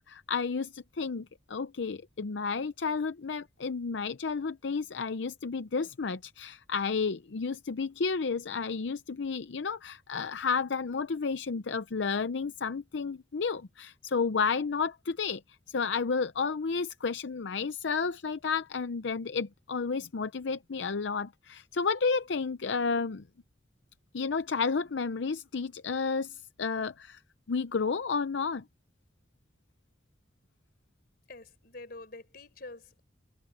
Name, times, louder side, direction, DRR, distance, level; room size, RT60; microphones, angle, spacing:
voice 1, 0.0-15.4 15.7-23.2 24.1-27.2 27.5-28.6, left 5 dB, 85° left, 0.6 m, -31 dB
voice 2, 31.3-33.0, left 2 dB, 55° left, 4.5 m, -46 dB
head